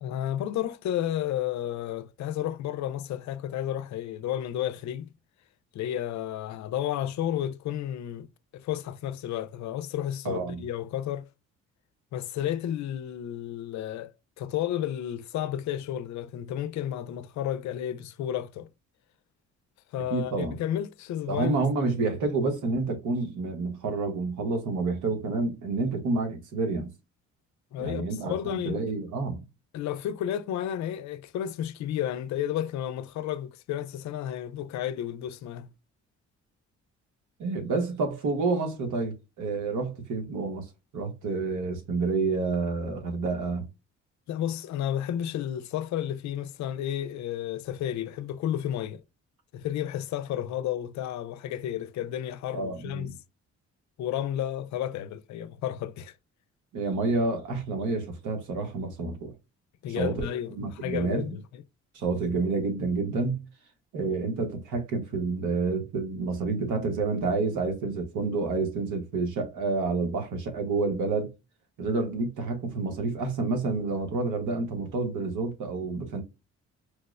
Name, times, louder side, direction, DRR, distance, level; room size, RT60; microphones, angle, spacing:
voice 1, 0.0-5.1 5.7-8.3 8.5-11.3 12.1-14.1 14.4-18.7 19.9-21.6 22.0-22.2 27.7-28.8 29.7-35.7 44.3-49.0 49.5-53.1 54.0-56.1 59.8-61.6, left 11 dB, 70° left, 0.4 m, -32 dB
voice 2, 10.2-10.6 20.1-20.6 21.3-26.9 27.8-29.4 37.4-40.7 40.9-43.7 52.5-53.1 56.7-59.3 59.9-60.3 60.5-61.4 61.9-63.4 63.9-71.3 71.8-76.2, right 3 dB, 80° right, 1.0 m, -29 dB
4.5 x 2.0 x 2.3 m
cardioid pair, 90°, 30 cm